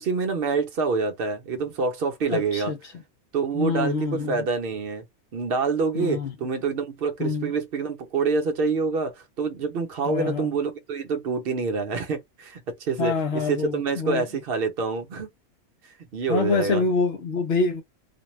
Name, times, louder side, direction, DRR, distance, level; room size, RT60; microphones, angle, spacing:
voice 1, 0.0-2.7 3.3-5.0 5.3-15.3 16.1-16.8, right 4 dB, 50° right, 0.9 m, -26 dB
voice 2, 2.3-2.8 3.5-4.4 5.9-6.3 7.2-7.5 10.0-10.5 13.0-14.3 16.3-17.8, left 4 dB, 60° left, 0.8 m, -26 dB
2.6 x 2.2 x 3.0 m
omnidirectional pair, 1.4 m